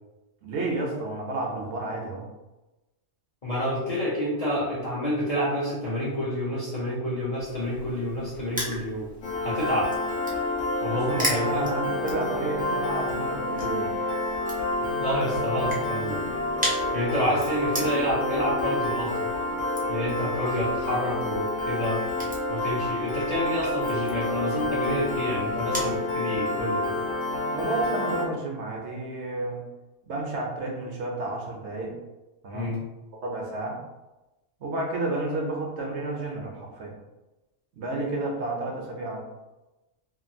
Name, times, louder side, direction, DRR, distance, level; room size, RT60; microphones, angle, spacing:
voice 1, 0.4-2.3 10.9-13.9 27.5-29.6 30.1-32.0 32.4-32.7 33.1-33.8 34.6-36.9 37.7-39.2, right 2 dB, 70° right, 0 dB, 0.9 m, -31 dB
voice 2, 3.4-9.1 9.4-9.9 10.8-11.7 14.8-16.2 16.9-19.3 19.9-22.0 22.5-26.9 32.5-32.8, equal, 45° left, -7 dB, 0.5 m, -29 dB
Crushing, 7.4-26.0, equal, 15° right, 0.3 m, -39 dB
Piano, 9.2-28.3, left 2 dB, 85° left, 1.0 m, -29 dB
2.9 x 2.4 x 2.6 m, 1.0 s
omnidirectional pair, 1.3 m